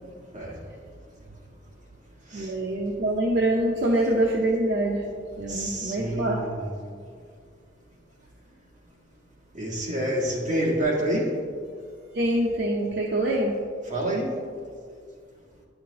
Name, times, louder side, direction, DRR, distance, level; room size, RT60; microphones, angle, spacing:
voice 1, 2.3-5.1 5.4-6.5 12.1-13.6, right 1 dB, 65° right, -2 dB, 0.7 m, -25 dB
voice 2, 5.5-6.8 9.5-11.3 13.9-14.3, right 1 dB, 45° right, -4 dB, 1.7 m, -27 dB
10.5 x 5.8 x 2.8 m, 2.1 s
head